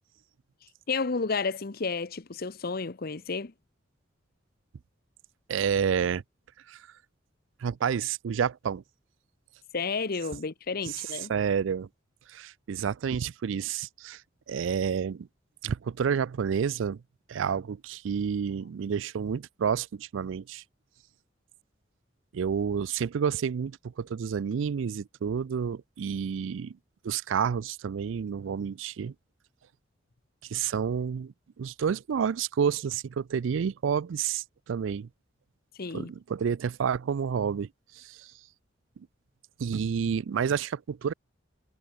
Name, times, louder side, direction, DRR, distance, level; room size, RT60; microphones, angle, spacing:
voice 1, 0.9-3.5 9.7-11.3 35.7-36.1, left 4 dB, 55° left, 0.8 m, -31 dB
voice 2, 5.5-6.2 6.7-6.8 7.6-8.8 11.3-11.9 12.3-14.2 14.5-15.3 15.6-17.0 17.3-20.6 22.3-26.8 27.0-29.1 30.5-35.1 35.9-37.7 38.0-38.3 39.6-41.1, right 7 dB, 80° right, 0.4 m, -29 dB
head